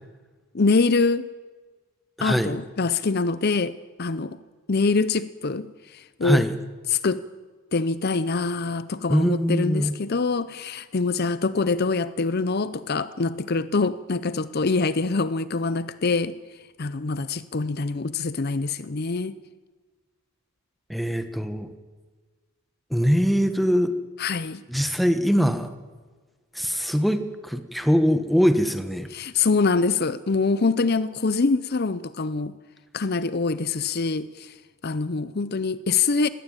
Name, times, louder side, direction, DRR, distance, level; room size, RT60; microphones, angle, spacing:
voice 1, 0.5-1.3 2.2-4.4 4.7-6.4 6.9-7.3 7.7-16.4 16.8-19.4 24.2-24.6 29.1-32.6 32.9-34.5 34.8-36.3, left 4 dB, 45° left, 15 dB, 0.6 m, -24 dB
voice 2, 2.2-2.5 6.2-6.6 9.1-9.9 20.9-21.7 22.9-23.9 24.7-25.7 26.5-29.1, equal, ahead, 9 dB, 1.3 m, -22 dB
20.5 x 17.0 x 8.9 m, 1.4 s
head